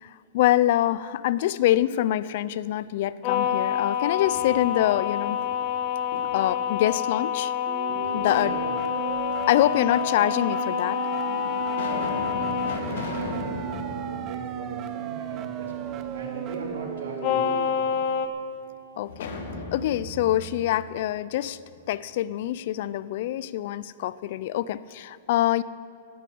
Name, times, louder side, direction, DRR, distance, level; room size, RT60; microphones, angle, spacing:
voice 1, 0.0-5.4 6.3-7.5 8.1-8.6 9.5-11.0 19.0-19.3 19.7-21.6 21.9-25.6, left 13 dB, 55° left, 18 dB, 0.5 m, -25 dB
sound 1, 3.2-12.8 17.2-18.3, left 9 dB, 35° left, 1.1 m, -27 dB
sound 2, 3.9-4.9 5.4-6.6 7.9-8.7 9.6-9.7 10.5-10.6 11.2-15.3 15.7-15.8 19.1-21.9, left 3 dB, 70° left, 2.0 m, -37 dB
sound 3, 7.7-17.7, right 12 dB, 30° right, 0.7 m, -35 dB
voice 2, 8.4-8.8 11.9-18.0, right 2 dB, 80° right, -2 dB, 4.0 m, -39 dB
13.0 x 9.4 x 8.5 m, 2.8 s
hypercardioid pair, 145°, 0 cm